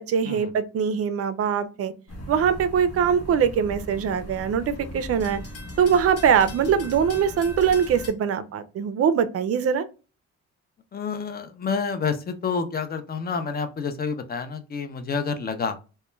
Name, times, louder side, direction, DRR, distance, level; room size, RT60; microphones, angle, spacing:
voice 1, 0.0-1.9 2.3-5.4 5.8-9.9, right 7 dB, 50° right, 12 dB, 0.4 m, -22 dB
sound 1, 2.1-8.1, left 1 dB, 55° left, 0.8 m, -38 dB
voice 2, 10.9-15.8, left 5 dB, 30° left, 9 dB, 0.4 m, -29 dB
2.2 x 2.2 x 3.0 m, 0.32 s
cardioid pair, 90°, 30 cm